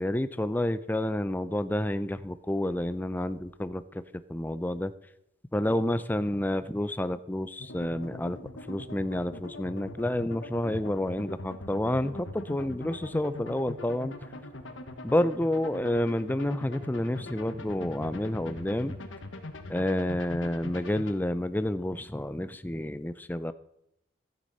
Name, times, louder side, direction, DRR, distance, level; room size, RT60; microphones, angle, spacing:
voice 1, 0.0-4.0 4.3-4.9 5.5-8.4 8.7-14.1 15.0-19.0 19.7-23.5, left 1 dB, 10° left, 13 dB, 0.4 m, -29 dB
sound 1, 7.6-21.1, left 2 dB, 70° left, 1.3 m, -42 dB
13.5 x 9.4 x 5.5 m, 0.81 s
head